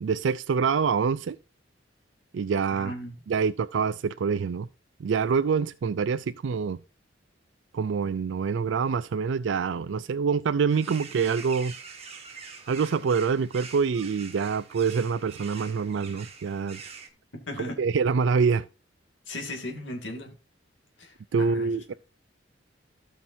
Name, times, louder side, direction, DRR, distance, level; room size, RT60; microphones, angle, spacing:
voice 1, 0.0-1.4 2.3-2.9 3.3-4.7 5.0-6.8 7.7-11.8 12.7-16.8 17.8-18.7 21.3-21.9, right 5 dB, 70° right, 0.4 m, -26 dB
voice 2, 2.7-3.1 17.5-17.8 19.3-20.4 21.0-21.9, left 1 dB, 75° left, 2.6 m, -37 dB
sound 1, 10.7-17.1, right 5 dB, 35° right, 1.8 m, -44 dB
16.5 x 5.9 x 2.7 m
head